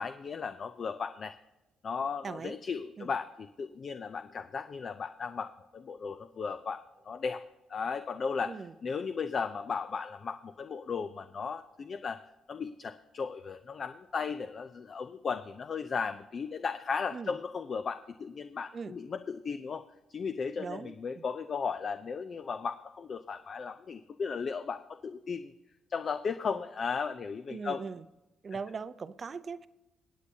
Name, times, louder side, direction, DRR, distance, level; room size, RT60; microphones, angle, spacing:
voice 1, 0.0-1.4 1.8-7.4 7.7-12.2 12.5-19.8 20.1-25.5 25.9-27.8 28.5-28.6, left 5 dB, 45° left, 10 dB, 0.5 m, -36 dB
voice 2, 2.2-2.6 3.0-3.1 8.5-8.7 17.1-17.3 18.7-18.9 20.6-20.9 27.5-28.0 28.4-29.7, right 5 dB, 40° right, 14 dB, 0.6 m, -39 dB
25.0 x 8.3 x 2.8 m, 1.0 s
cardioid pair, 90°, 0 cm